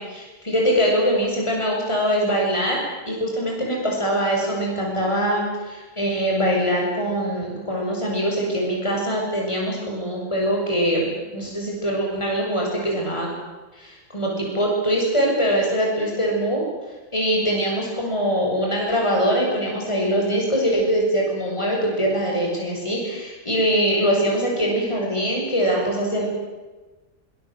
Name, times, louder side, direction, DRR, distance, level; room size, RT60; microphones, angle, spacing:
voice 1, 0.0-2.8 3.0-13.3 13.7-16.6 17.1-26.3, equal, 20° left, -1 dB, 6.7 m, -23 dB
24.0 x 22.0 x 7.9 m, 1.2 s
omnidirectional pair, 1.5 m